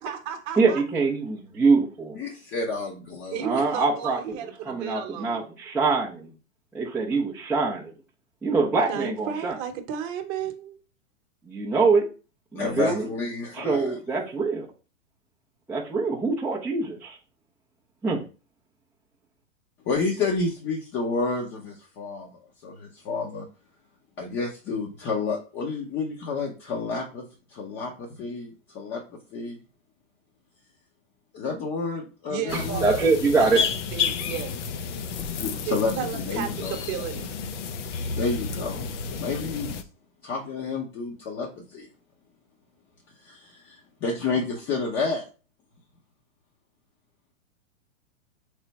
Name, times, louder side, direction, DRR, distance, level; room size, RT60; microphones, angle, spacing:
voice 1, 0.0-0.8 3.3-5.5 8.9-10.8 32.3-33.1 33.4-33.6 33.9-34.6 35.7-37.4, right 8 dB, 35° right, 0.9 m, -33 dB
voice 2, 0.6-2.2 3.4-4.2 4.7-6.3 6.7-7.9 8.4-9.6 11.4-12.1 12.5-13.1 13.5-14.7 15.7-17.2 18.0-18.2 32.8-33.6, right 4 dB, ahead, 0.4 m, -24 dB
voice 3, 2.2-3.6 12.5-13.9 19.9-23.5 24.2-27.2 27.5-29.0 29.3-29.6 31.3-32.9 35.4-36.8 38.2-38.9 39.2-39.8 40.2-41.9 43.2-45.2, left 4 dB, 25° left, 0.7 m, -30 dB
sound 1, 32.5-39.8, left 5 dB, 65° left, 0.7 m, -31 dB
3.6 x 3.4 x 4.1 m
hypercardioid pair, 135°, 40 cm